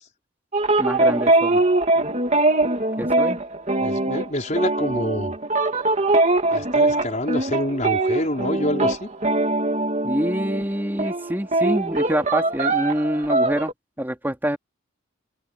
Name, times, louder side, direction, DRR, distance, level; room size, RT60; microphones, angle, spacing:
sound 1, 0.5-10.7 11.0-13.7, right 2 dB, 35° right, 2.6 m, -22 dB
voice 1, 0.8-1.6 3.0-3.4 10.0-13.7 14.0-14.6, equal, 10° right, 2.7 m, -26 dB
voice 2, 3.8-5.4 6.5-9.1, left 1 dB, 35° left, 5.1 m, -26 dB
open air
head